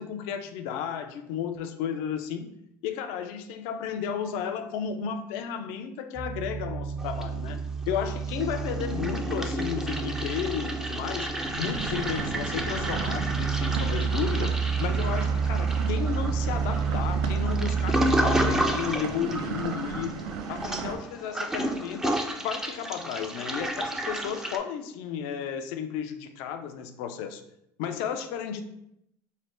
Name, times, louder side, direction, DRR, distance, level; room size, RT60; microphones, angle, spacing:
voice 1, 0.0-2.5 2.8-7.6 7.9-11.3 11.6-14.5 14.8-20.2 20.5-27.4 27.8-28.6, left 8 dB, 75° left, 7 dB, 0.4 m, -33 dB
sound 1, 6.2-18.5, right 6 dB, 40° right, 0.7 m, -30 dB
Toilet flush, 7.0-7.8 8.1-24.6, equal, 5° right, 0.4 m, -32 dB
sound 2, 11.4-21.0, right 5 dB, 80° right, 0.4 m, -36 dB
3.2 x 2.1 x 4.2 m, 0.78 s
supercardioid pair, 100°, 9 cm